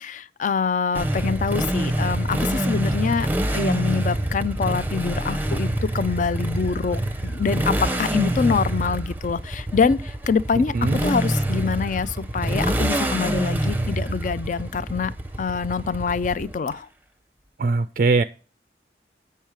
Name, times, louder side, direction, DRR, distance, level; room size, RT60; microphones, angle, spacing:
voice 1, 0.0-3.3 3.5-15.1 15.4-16.9, left 5 dB, 45° left, 0.4 m, -25 dB
Motorcycle, 0.9-16.7, right 1 dB, 10° right, 0.6 m, -26 dB
voice 2, 17.6-18.2, right 3 dB, 50° right, 0.4 m, -21 dB
8.8 x 5.5 x 4.7 m
head